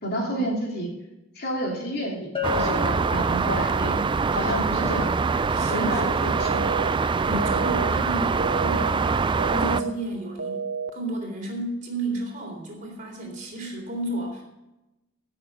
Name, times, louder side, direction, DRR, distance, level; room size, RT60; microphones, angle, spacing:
voice 1, 0.0-0.9 1.3-4.0 4.3-5.2 5.7-6.8 7.3-7.6, equal, 50° left, -1 dB, 3.0 m, -30 dB
Bell, 2.3-4.0, left 8 dB, 25° left, 1.3 m, -33 dB
sound 1, 2.4-9.8, right 4 dB, 25° right, 0.3 m, -24 dB
voice 2, 5.5-6.3 7.0-10.7 10.9-14.4, right 1 dB, 40° right, 0 dB, 3.7 m, -33 dB
sound 2, 6.4-6.9 7.4-7.9 8.4-8.9 9.4-9.9 10.4-10.9, right 5 dB, 60° right, 1.0 m, -30 dB
16.0 x 6.9 x 5.3 m, 0.94 s
head